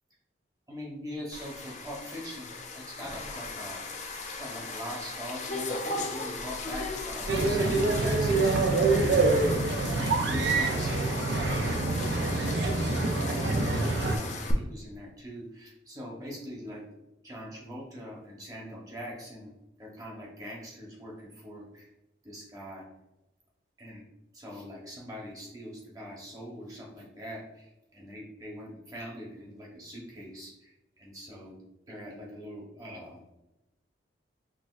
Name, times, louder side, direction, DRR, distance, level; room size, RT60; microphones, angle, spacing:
voice 1, 0.7-3.8 4.4-9.5 9.9-12.6 13.3-16.8 17.2-19.5 19.8-21.9 22.2-22.8 23.8-24.0 24.3-30.7 31.0-31.6 31.9-33.2, equal, 20° right, -3 dB, 1.0 m, -42 dB
sound 1, 1.3-14.5, left 3 dB, 40° left, 0.4 m, -37 dB
sound 2, 7.3-14.2, right 3 dB, 70° right, 0.5 m, -26 dB
6.0 x 2.4 x 2.4 m, 0.93 s
head